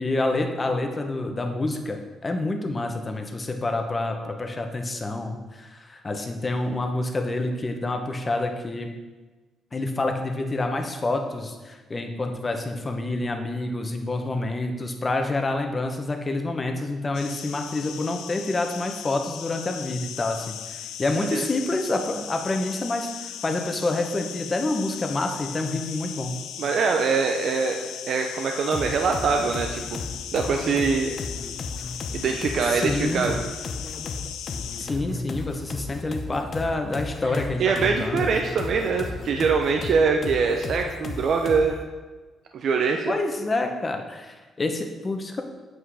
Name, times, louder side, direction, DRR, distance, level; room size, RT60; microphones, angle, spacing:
voice 1, 0.0-8.9 9.7-26.4 32.7-33.4 34.8-38.3 43.1-45.4, left 2 dB, 30° left, 4 dB, 1.1 m, -28 dB
sound 1, 17.1-34.9, left 9 dB, 85° left, 0.4 m, -38 dB
voice 2, 26.6-30.0 30.3-31.2 32.1-33.4 37.6-41.8 42.5-43.1, right 5 dB, 60° right, 3 dB, 0.6 m, -23 dB
sound 2, 28.7-41.9, left 4 dB, 45° left, 0.8 m, -35 dB
7.9 x 5.8 x 4.9 m, 1.3 s
cardioid pair, 90°, 0 cm